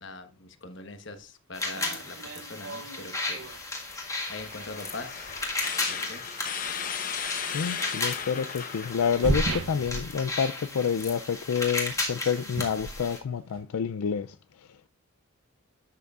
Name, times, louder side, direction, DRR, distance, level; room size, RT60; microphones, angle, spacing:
voice 1, 0.0-3.4 4.3-5.3 5.9-6.3, left 3 dB, 55° left, 1.1 m, -42 dB
sound 1, 1.1-1.2 1.6-3.6 4.7-4.8 6.6-6.9 7.2-7.3 8.9-10.7 11.0-11.3 11.6-13.6, right 2 dB, 65° right, 0.7 m, -35 dB
sound 2, 1.5-13.2, left 2 dB, 15° left, 1.6 m, -35 dB
sound 3, 3.4-9.9, left 7 dB, 40° left, 0.8 m, -37 dB
voice 2, 7.4-14.7, left 7 dB, 85° left, 0.4 m, -29 dB
11.0 x 7.9 x 2.4 m
head